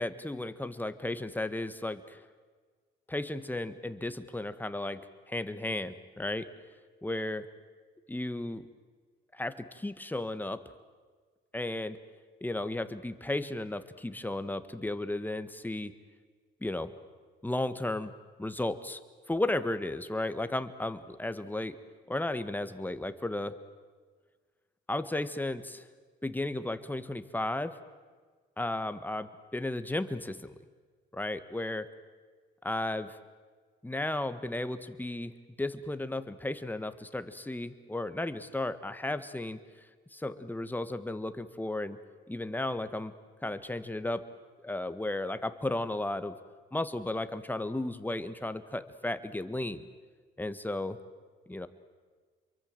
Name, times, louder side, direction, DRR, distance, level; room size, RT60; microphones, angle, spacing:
voice 1, 0.0-2.2 3.1-6.5 7.0-7.5 8.1-8.7 9.3-10.7 11.5-12.0 12.4-15.9 16.6-16.9 17.4-18.1 18.4-19.0 19.3-21.8 22.1-23.5 24.9-25.9 26.2-27.8 28.6-30.5 31.1-31.9 32.6-33.2 33.8-39.6 40.1-42.0 42.3-43.1 43.4-44.2 44.6-46.4 46.7-49.8 50.4-51.0 51.5-51.7, left 1 dB, 10° left, 11 dB, 1.5 m, -34 dB
27.5 x 23.0 x 7.8 m, 1.5 s
cardioid pair, 90°, 20 cm